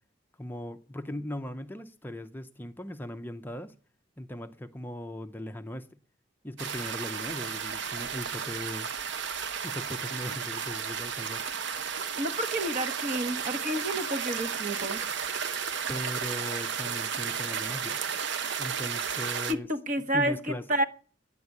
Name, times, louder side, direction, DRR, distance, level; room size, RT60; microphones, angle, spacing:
voice 1, 0.4-3.7 4.2-5.9 6.4-8.9 9.6-11.4 15.9-18.0 18.6-19.7 20.1-20.6, left 1 dB, 10° left, 0.5 m, -38 dB
sound 1, 6.6-19.5, right 7 dB, 65° right, 0.8 m, -33 dB
voice 2, 12.2-15.0 19.5-20.8, right 1 dB, 40° right, 1.3 m, -30 dB
10.5 x 8.4 x 9.3 m
head